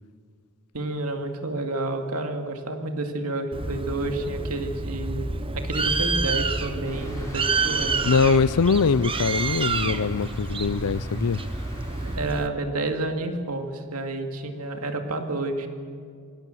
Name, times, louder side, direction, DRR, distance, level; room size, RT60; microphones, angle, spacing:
voice 1, 0.7-5.3 5.5-8.4 12.0-15.7, right 2 dB, 85° right, 5 dB, 2.2 m, -30 dB
Bird, 3.5-12.5, right 3 dB, 25° right, 0.9 m, -28 dB
sound 1, 6.8-12.2, left 1 dB, 15° left, 4.3 m, -44 dB
voice 2, 8.0-11.4, left 5 dB, 90° left, 20 dB, 0.6 m, -22 dB
24.0 x 17.5 x 7.8 m, 2.2 s
head